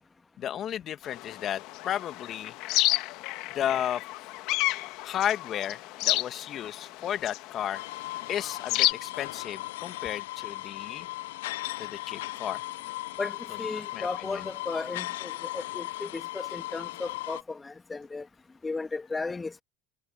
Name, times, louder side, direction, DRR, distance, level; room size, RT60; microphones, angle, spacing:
voice 1, 0.4-2.5 3.5-4.0 5.0-7.8 8.3-11.1 11.8-12.6 13.9-14.4, left 10 dB, 50° left, 2.0 m, -33 dB
sound 1, 1.1-8.9, left 19 dB, 70° left, 1.3 m, -31 dB
sound 2, 7.7-17.4, left 18 dB, 90° left, 0.4 m, -37 dB
voice 2, 13.2-18.2 18.6-19.6, left 3 dB, 20° left, 1.5 m, -35 dB
supercardioid pair, 95°, 0 cm